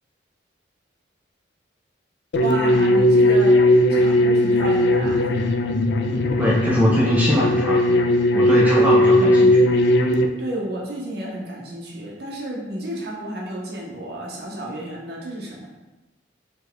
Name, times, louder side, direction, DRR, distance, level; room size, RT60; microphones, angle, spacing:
sound 1, 2.3-10.3, left 1 dB, 65° left, 0.4 m, -17 dB
voice 1, 2.4-3.6 3.9-5.3 10.4-15.7, right 1 dB, 55° right, -3 dB, 1.0 m, -31 dB
voice 2, 6.1-8.0 8.3-9.7, equal, 10° right, -4 dB, 0.4 m, -22 dB
5.3 x 2.3 x 3.9 m, 1.1 s
head